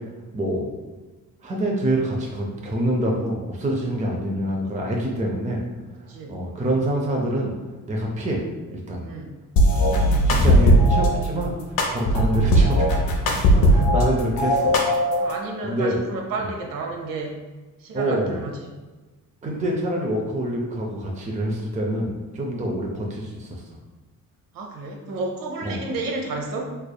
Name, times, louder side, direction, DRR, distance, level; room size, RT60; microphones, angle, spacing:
voice 1, 0.3-0.7 1.4-5.6 6.3-7.5 7.9-8.4 8.7-9.1 9.9-12.9 13.2-14.7 15.0-15.2 15.6-16.0 17.9-18.4 19.4-23.6 25.6-25.8, right 1 dB, 20° right, -1 dB, 0.5 m, -26 dB
voice 2, 6.1-6.4 9.0-9.3 13.5-13.9 15.2-17.4 17.8-18.5 24.5-26.7, right 3 dB, 70° right, 1 dB, 0.8 m, -31 dB
sound 1, 9.6-11.1 11.8-14.1 14.4-15.3, equal, 80° left, 0.7 m, -17 dB
3.8 x 3.3 x 2.2 m, 1.2 s
cardioid pair, 105°, 35 cm